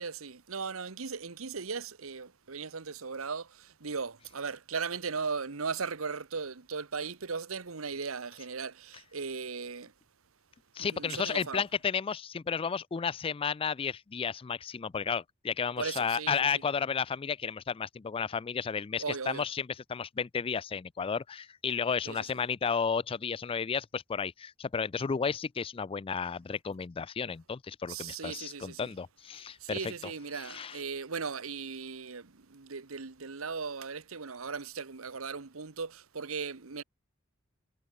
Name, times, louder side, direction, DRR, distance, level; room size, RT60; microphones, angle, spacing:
voice 1, 0.0-9.9 10.8-11.6 15.8-16.4 19.0-19.5 22.0-22.4 27.9-28.9 29.6-36.8, right 5 dB, 85° right, 1.2 m, -37 dB
voice 2, 10.8-29.9 30.4-30.8, left 6 dB, 25° left, 0.3 m, -33 dB
head